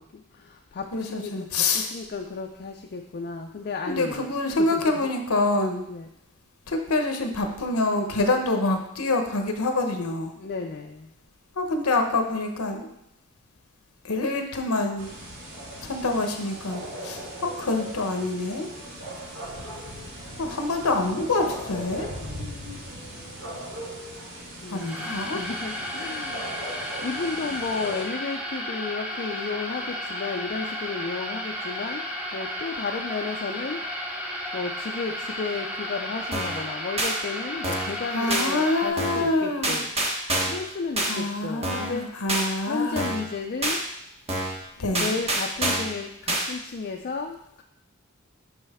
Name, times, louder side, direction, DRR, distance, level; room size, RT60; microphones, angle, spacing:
voice 1, 0.0-4.3 4.7-5.0 5.9-6.1 10.4-11.1 24.6-26.5 27.0-32.0 32.3-33.8 34.5-39.9 40.5-42.1 42.7-43.8 44.9-47.6, left 4 dB, 45° left, 2 dB, 0.4 m, -33 dB
voice 2, 0.9-1.9 3.9-5.8 6.7-10.3 11.6-12.9 14.0-15.1 15.8-18.7 20.4-22.1 24.7-25.4 38.1-39.8 41.1-43.1 44.8-45.1, left 2 dB, 85° left, 4 dB, 0.8 m, -26 dB
sound 1, 15.0-28.0, right 1 dB, 70° right, 1.9 m, -39 dB
sound 2, 24.7-38.9, equal, 5° right, 0.7 m, -33 dB
sound 3, 36.3-36.6 37.0-37.1 37.6-38.0 38.3-38.5 39.0-39.3 39.6-40.6 41.0-41.1 41.6-42.0 42.3-42.5 43.0-43.3 43.6-43.8 44.3-44.6 44.9-45.9 46.3-46.4, right 1 dB, 30° right, 1.0 m, -26 dB
6.1 x 5.4 x 3.5 m, 0.79 s
head